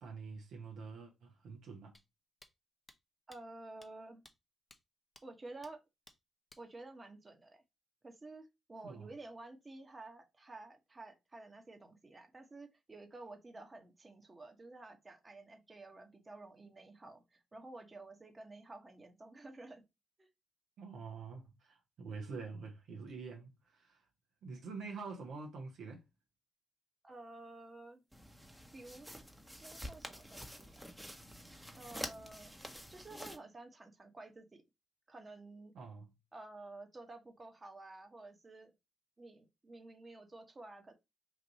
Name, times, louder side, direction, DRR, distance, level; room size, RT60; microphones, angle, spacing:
voice 1, 0.0-1.9 8.8-9.1 20.8-24.0 24.4-26.0 35.7-36.1, right 4 dB, 70° right, 0.9 m, -46 dB
sound 1, 1.9-2.0 2.4-2.5 2.9-3.0 3.3-3.4 3.8-3.9 4.2-4.3 4.7-4.8 5.2-5.3 5.6-5.7 6.1-6.2 6.5-6.6, left 1 dB, 20° left, 0.8 m, -59 dB
voice 2, 3.3-4.2 5.2-5.8 6.6-7.6 8.0-19.8 20.2-20.3 27.0-28.0 28.7-29.1 29.6-30.9 31.8-32.5 32.9-34.6 35.1-35.7 36.3-38.7 39.2-40.9, right 2 dB, 30° right, 1.1 m, -52 dB
sound 2, 28.1-33.4, equal, 5° right, 0.9 m, -48 dB
3.1 x 2.6 x 3.9 m
hypercardioid pair, 50°, 0 cm